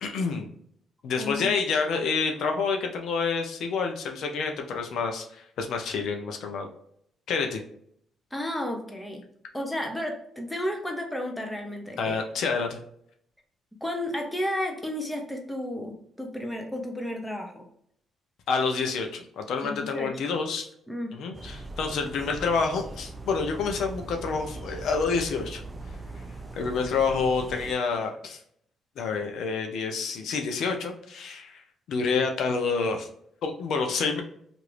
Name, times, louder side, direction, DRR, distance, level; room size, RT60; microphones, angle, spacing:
voice 1, 0.0-0.5 1.0-6.7 7.3-7.6 12.0-12.8 18.5-20.7 21.1-25.6 26.2-26.3 26.5-28.4 29.0-31.6 31.9-33.1 33.4-34.2, left 5 dB, 75° left, 4 dB, 0.5 m, -28 dB
voice 2, 1.2-1.5 8.3-9.2 9.5-12.2 13.8-17.6 19.6-20.1 20.9-21.2, left 1 dB, 5° left, 2 dB, 0.8 m, -32 dB
sound 1, 21.3-27.7, right 2 dB, 20° right, 0.4 m, -40 dB
2.9 x 2.5 x 3.1 m, 0.68 s
cardioid pair, 90°, 0 cm